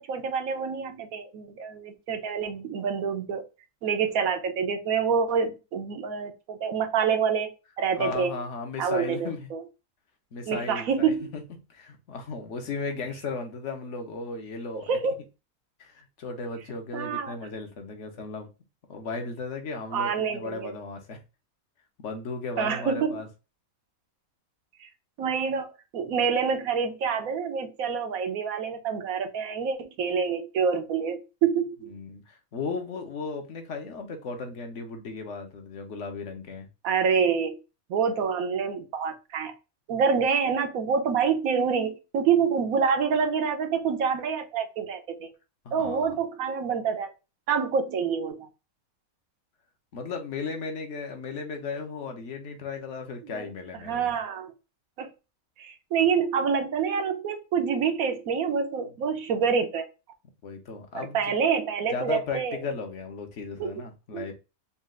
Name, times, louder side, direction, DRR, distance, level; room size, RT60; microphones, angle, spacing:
voice 1, 0.0-3.4 3.8-8.4 8.8-9.6 10.5-11.3 14.7-15.2 16.9-17.3 19.9-20.7 22.6-23.2 24.8-24.9 25.2-31.9 36.8-37.6 37.9-39.5 39.9-45.3 45.7-47.1 47.5-48.5 53.2-53.5 53.8-54.5 55.0-55.1 55.6-59.9 60.9-62.6 63.6-63.7 64.1-64.3, right 6 dB, 80° right, 1.2 m, -27 dB
voice 2, 8.0-9.5 10.3-11.4 11.7-15.0 15.8-18.5 18.9-21.2 22.0-23.3 31.9-36.7 45.6-46.1 49.9-54.2 60.4-61.2 61.9-64.3, left 4 dB, 60° left, 1.1 m, -36 dB
4.2 x 2.5 x 3.7 m
omnidirectional pair, 1.5 m